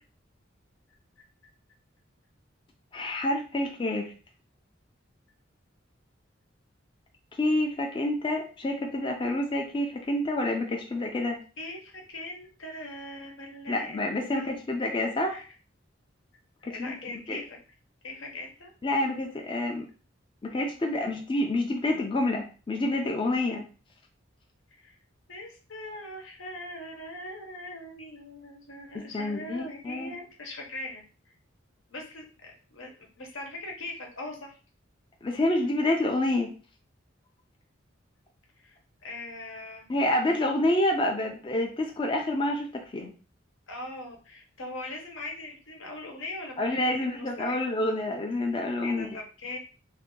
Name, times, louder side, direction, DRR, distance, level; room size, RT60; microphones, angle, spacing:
voice 1, 2.9-4.1 7.4-11.4 13.7-15.4 16.6-16.9 17.3-17.4 18.8-19.9 20.4-23.7 28.9-30.1 35.2-36.5 39.9-43.1 46.6-49.1, left 1 dB, 25° left, 1 dB, 0.4 m, -28 dB
voice 2, 11.6-14.5 15.3-15.4 16.7-17.6 18.0-18.7 24.8-25.0 25.3-31.0 31.9-34.6 38.6-39.8 43.7-47.6 48.8-49.6, left 2 dB, 80° left, 2 dB, 0.9 m, -41 dB
2.7 x 2.5 x 3.6 m, 0.36 s
head